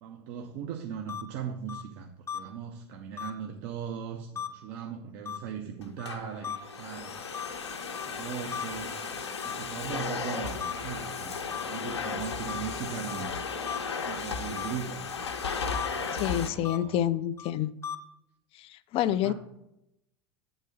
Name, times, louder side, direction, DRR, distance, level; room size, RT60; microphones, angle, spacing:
voice 1, 0.0-7.5 8.0-9.1 9.4-13.4 14.0-15.1 16.2-17.1 19.1-19.3, right 8 dB, 55° right, 0.7 m, -39 dB
sound 1, 1.1-1.2 1.7-1.8 2.3-2.4 3.2-3.3 4.4-4.5 5.3-5.4 6.0-6.1 6.4-6.6 7.3-7.5 7.9-8.1 8.5-8.6 9.4-9.5 10.6-10.7 11.5-11.6 12.5-12.6 13.1-13.2 13.7-13.8 14.6-14.7 15.7-15.9 16.6-16.8 17.4-17.5 17.8-18.0, left 8 dB, 20° left, 0.8 m, -35 dB
Domestic sounds home sounds, 5.8-16.5, left 5 dB, 90° left, 0.8 m, -35 dB
voice 2, 16.1-17.7 18.6-19.3, left 12 dB, 45° left, 0.4 m, -28 dB
8.2 x 4.0 x 6.4 m
hypercardioid pair, 85°, 14 cm